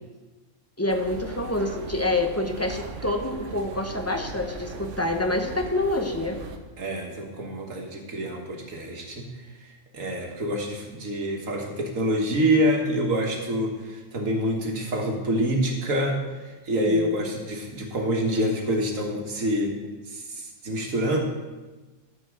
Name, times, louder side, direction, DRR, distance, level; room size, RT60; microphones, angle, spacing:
voice 1, 0.8-6.4 16.8-17.3, left 2 dB, 15° left, 4 dB, 0.6 m, -27 dB
sound 1, 0.9-6.6, right 4 dB, 75° right, 1.2 m, -39 dB
voice 2, 6.8-9.3 9.9-19.7 20.1-21.2, equal, 90° right, 1 dB, 1.9 m, -26 dB
13.0 x 4.6 x 6.2 m, 1.2 s
omnidirectional pair, 1.3 m